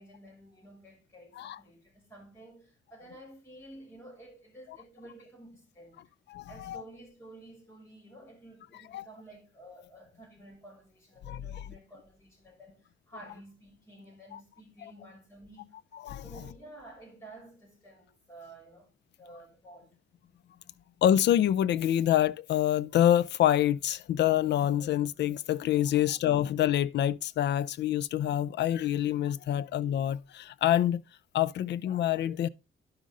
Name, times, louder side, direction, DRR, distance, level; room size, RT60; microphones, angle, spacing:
voice 1, 0.0-6.0 6.5-15.7 16.2-19.9 25.9-26.1, right 1 dB, 15° left, 5.9 m, -52 dB
voice 2, 6.3-6.8 8.9-9.0 11.2-11.7 14.3-14.4 16.0-16.2 21.0-31.0 31.3-32.5, left 11 dB, 60° left, 0.4 m, -26 dB
11.5 x 5.4 x 3.7 m
cardioid pair, 135°, 21 cm